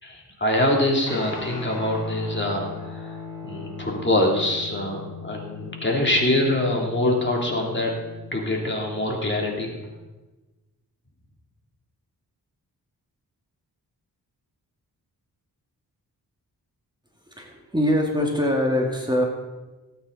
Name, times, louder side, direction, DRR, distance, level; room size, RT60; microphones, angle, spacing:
voice 1, 0.0-3.2 3.4-7.9 8.3-9.7, left 1 dB, 30° left, 0 dB, 3.2 m, -24 dB
Guitar, 1.1-9.9, left 5 dB, 70° left, 4.6 m, -39 dB
voice 2, 17.3-19.3, left 1 dB, 10° right, 0 dB, 2.2 m, -23 dB
18.0 x 8.9 x 4.2 m, 1.2 s
cardioid pair, 60°, 38 cm